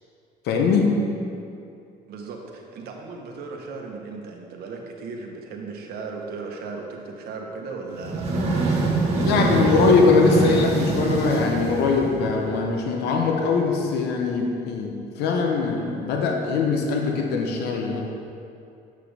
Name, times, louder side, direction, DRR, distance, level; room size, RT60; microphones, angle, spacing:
voice 1, 0.4-1.0 9.1-18.0, left 4 dB, 75° left, 2 dB, 0.7 m, -21 dB
voice 2, 2.1-9.8, right 4 dB, 70° right, 1 dB, 1.1 m, -36 dB
sound 1, 7.9-12.5, right 2 dB, 40° right, 1.4 m, -24 dB
7.6 x 6.0 x 3.4 m, 2.5 s
cardioid pair, 110°, 17 cm